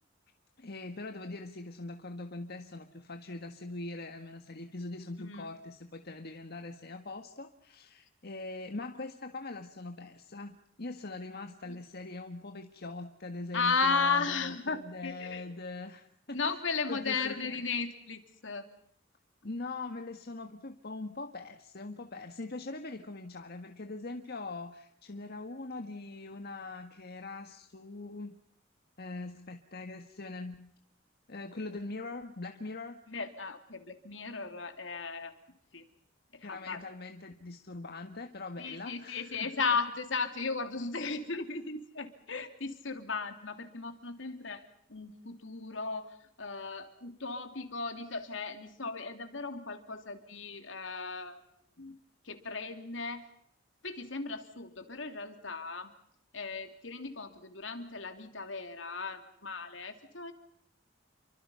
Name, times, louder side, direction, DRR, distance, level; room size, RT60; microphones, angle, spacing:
voice 1, 0.6-16.4 16.9-17.6 19.4-28.4 29.0-30.7 31.3-33.0 36.4-39.5, left 2 dB, 55° left, 5 dB, 1.6 m, -42 dB
voice 2, 13.5-15.4 16.3-18.7 33.1-35.3 35.7-35.8 36.3-36.8 38.6-51.4 51.8-52.0 52.2-53.3 53.8-55.9 56.3-60.3, left 4 dB, 75° left, 7 dB, 3.1 m, -35 dB
29.5 x 24.5 x 5.7 m, 0.68 s
head